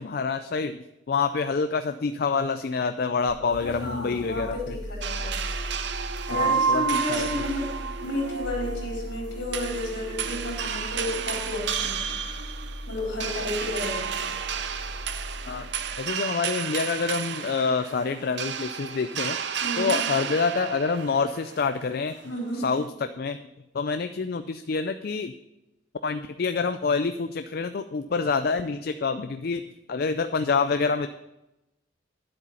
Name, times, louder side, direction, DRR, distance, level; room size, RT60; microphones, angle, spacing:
voice 1, 0.0-4.8 6.3-7.3 15.5-15.7 16.0-19.4 19.8-22.1 22.6-23.4 23.7-25.3 26.0-31.1, left 4 dB, 50° left, 9 dB, 0.4 m, -27 dB
sound 1, 3.3-16.0, equal, 20° right, 2.0 m, -39 dB
voice 2, 3.6-5.4 6.3-7.7 8.0-12.1 12.9-14.3 19.6-20.0 22.2-22.7, left 1 dB, 70° left, -2 dB, 4.3 m, -32 dB
sound 2, 5.0-22.8, right 7 dB, 60° right, 0.6 m, -31 dB
10.0 x 8.0 x 5.6 m, 0.94 s
head